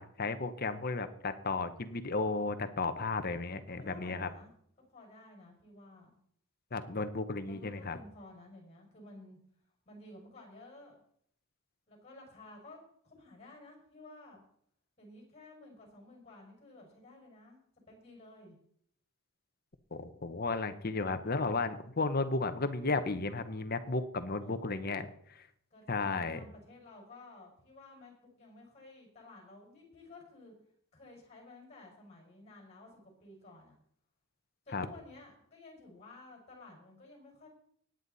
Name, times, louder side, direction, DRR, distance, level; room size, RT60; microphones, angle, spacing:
voice 1, 0.0-4.3 6.7-8.0 19.9-25.1 25.4-25.5 25.9-26.4 34.7-34.9, left 3 dB, 45° left, 10 dB, 1.0 m, -34 dB
voice 2, 3.1-4.5 4.9-6.1 7.4-9.4 9.9-11.0 11.9-12.8 13.0-14.4 15.0-18.6 24.4-25.0 25.7-30.5 30.9-33.8 34.7-37.5, left 2 dB, 30° left, 1 dB, 5.6 m, -54 dB
18.0 x 9.4 x 4.1 m, 0.66 s
head